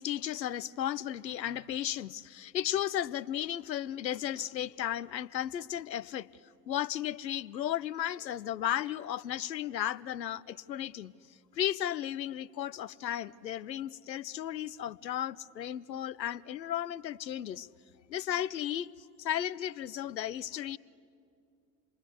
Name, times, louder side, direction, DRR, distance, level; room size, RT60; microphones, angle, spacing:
voice 1, 0.0-6.3 6.7-11.1 11.5-17.7 18.1-18.9 19.2-20.8, left 11 dB, 80° left, 22 dB, 0.6 m, -34 dB
28.5 x 22.0 x 8.1 m, 2.4 s
figure-of-eight pair, 70°, 50 cm